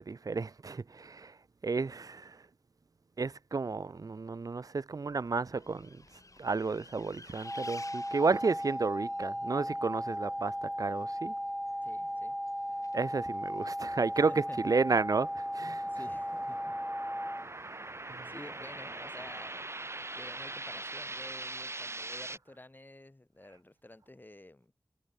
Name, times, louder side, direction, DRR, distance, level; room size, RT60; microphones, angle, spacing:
voice 1, 0.0-1.3 1.6-2.4 3.2-5.9 6.4-11.3 12.9-14.3 14.6-15.8 18.1-18.3, right 4 dB, 55° right, 0.6 m, -32 dB
Bus, 5.1-19.5, left 3 dB, 50° left, 5.4 m, -57 dB
sound 1, 7.4-17.4, equal, ahead, 0.6 m, -36 dB
voice 2, 11.8-12.4 14.1-15.1 15.8-16.8 17.5-17.8 18.2-19.7 20.1-24.7, left 1 dB, 25° left, 4.9 m, -51 dB
sound 2, 14.3-22.4, right 2 dB, 40° right, 2.1 m, -42 dB
wide cardioid pair, 50°, 7 cm